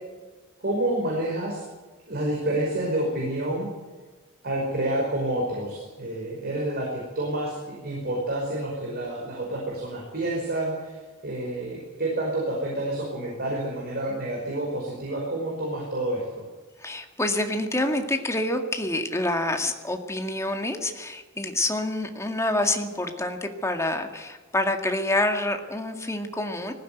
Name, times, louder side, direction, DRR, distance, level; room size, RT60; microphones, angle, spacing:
voice 1, 0.6-1.6 2.1-3.7 4.4-11.0 11.2-16.5, right 1 dB, 50° right, -2 dB, 5.3 m, -29 dB
voice 2, 16.8-26.7, left 1 dB, 15° left, 5 dB, 2.0 m, -27 dB
19.5 x 15.5 x 9.3 m, 1.3 s
head